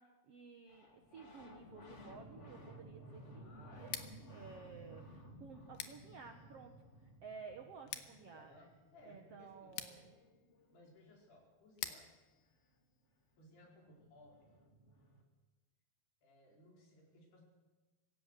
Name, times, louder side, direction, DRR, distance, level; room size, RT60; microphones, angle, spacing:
voice 1, 0.0-4.0 4.3-6.7 7.0-8.7 9.0-10.1, right 5 dB, 75° right, 5 dB, 1.4 m, -54 dB
sound 1, 0.7-11.1 13.2-13.3 13.4-15.2, right 1 dB, 25° left, 1.9 m, -57 dB
voice 2, 3.3-4.0 8.1-9.9 10.7-12.1 13.4-14.6 16.2-17.4, left 1 dB, 90° left, -1 dB, 6.9 m, -62 dB
Scissors, 3.8-13.6, left 10 dB, 75° left, 2.8 m, -52 dB
25.0 x 16.0 x 6.6 m, 1.2 s
omnidirectional pair, 4.5 m